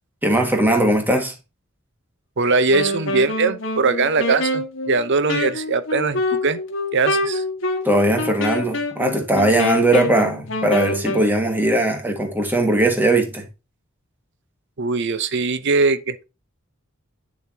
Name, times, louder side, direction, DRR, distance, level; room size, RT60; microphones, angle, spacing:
voice 1, 0.2-1.3 7.8-13.4, right 1 dB, 10° right, 1.8 m, -19 dB
voice 2, 2.4-6.6 6.9-7.4 14.8-16.2, right 4 dB, 60° right, 0.7 m, -21 dB
Wind instrument woodwind instrument, 2.6-11.3, left 1 dB, 65° left, 1.6 m, -26 dB
8.7 x 6.9 x 2.8 m
head